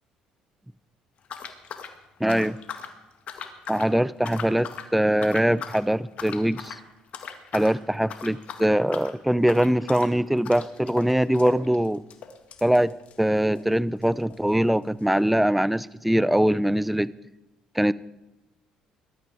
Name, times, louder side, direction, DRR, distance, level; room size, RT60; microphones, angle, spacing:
sound 1, 1.2-3.0 3.3-3.9 4.2-4.9 5.2-5.8 6.2-6.8 7.1-7.8 8.0-13.7 14.0-14.1 14.3-14.4 15.1-15.2, left 7 dB, 60° left, 2.0 m, -39 dB
voice 1, 2.2-2.6 3.7-6.8 7.5-12.0 12.6-12.9 13.2-17.1 17.7-17.9, right 1 dB, 5° right, 19 dB, 0.6 m, -22 dB
20.5 x 12.5 x 4.9 m, 0.98 s
supercardioid pair, 70°, 3 cm